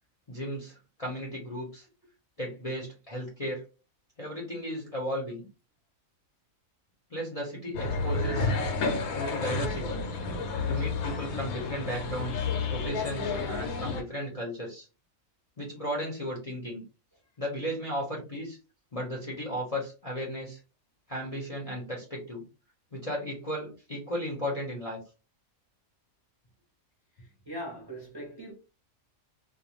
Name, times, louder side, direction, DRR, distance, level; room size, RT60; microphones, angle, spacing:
voice 1, 0.3-1.9 2.4-3.6 4.2-5.4 7.1-8.5 9.1-10.0 10.7-14.9 15.6-16.8 17.4-18.6 18.9-20.6 21.1-22.4 22.9-25.0, equal, 35° left, 0.6 m, -35 dB
sound 1, 7.7-14.0, left 4 dB, 80° left, 1.0 m, -31 dB
voice 2, 27.2-28.5, equal, 25° right, 0.6 m, -41 dB
2.4 x 2.2 x 2.9 m
omnidirectional pair, 1.5 m